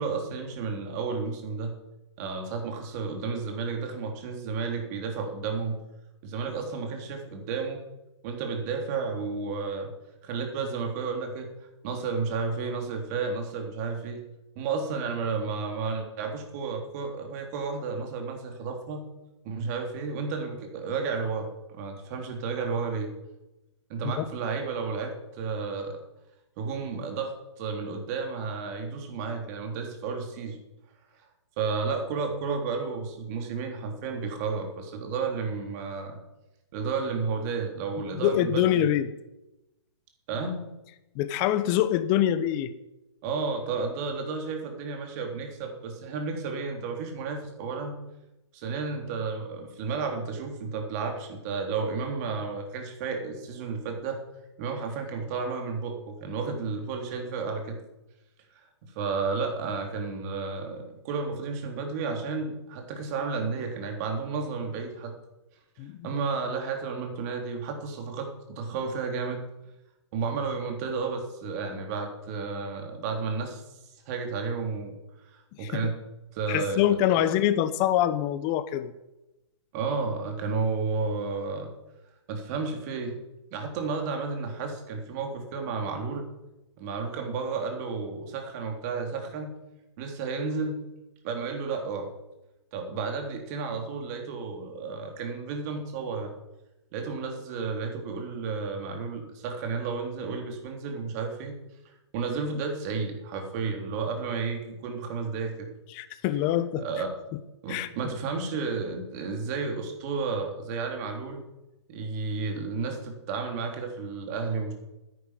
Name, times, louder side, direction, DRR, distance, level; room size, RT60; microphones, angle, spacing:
voice 1, 0.0-1.7 2.2-5.8 6.2-7.8 8.2-9.9 10.2-11.5 11.8-14.2 14.5-19.0 19.4-23.1 23.9-26.0 26.6-30.6 31.6-36.2 36.7-38.9 40.3-40.7 43.2-48.0 48.5-54.2 54.6-57.8 58.8-65.1 66.0-69.4 70.1-73.6 74.0-75.0 75.3-76.0 76.3-77.2 79.7-81.7 82.3-83.2 83.5-86.3 86.8-89.5 90.0-90.8 91.2-92.1 92.7-96.3 96.9-101.5 102.1-105.7 106.8-107.1 107.6-111.4 111.9-114.7, right 4 dB, 35° right, 3 dB, 3.3 m, -32 dB
voice 2, 38.1-39.1 41.1-42.7 65.8-66.1 75.6-75.9 76.5-78.9 105.9-106.8 107.3-107.4 107.7-107.9, left 12 dB, 25° left, 13 dB, 1.0 m, -25 dB
10.5 x 10.0 x 9.9 m, 0.97 s
hypercardioid pair, 150°, 15 cm